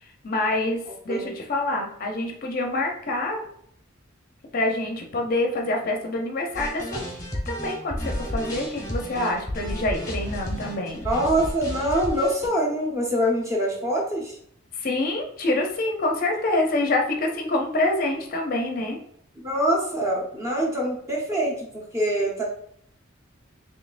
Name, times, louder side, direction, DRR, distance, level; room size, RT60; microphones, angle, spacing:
voice 1, 0.0-3.4 4.5-7.1 7.5-11.1 14.7-19.0, left 2 dB, 45° left, 2 dB, 0.5 m, -26 dB
sound 1, 6.5-12.5, left 1 dB, 15° left, 0.9 m, -32 dB
voice 2, 11.0-14.4 19.4-22.5, right 1 dB, 15° right, -2 dB, 0.8 m, -24 dB
4.2 x 3.1 x 2.4 m, 0.68 s
head